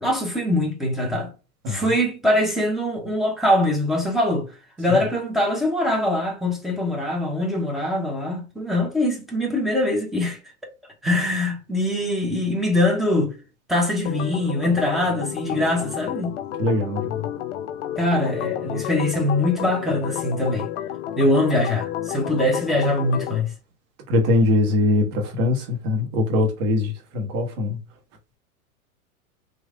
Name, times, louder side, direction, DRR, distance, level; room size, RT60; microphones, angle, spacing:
voice 1, 0.0-1.3 1.7-4.5 4.8-10.4 11.0-13.3 13.7-16.4 18.0-20.7 21.2-23.5, left 1 dB, ahead, 0.8 m, -23 dB
Organ, 14.0-23.4, left 11 dB, 55° left, 0.5 m, -31 dB
voice 2, 16.6-17.3 24.1-27.8, left 2 dB, 35° right, 1.2 m, -22 dB
3.1 x 2.5 x 3.6 m
hypercardioid pair, 110°, 45 cm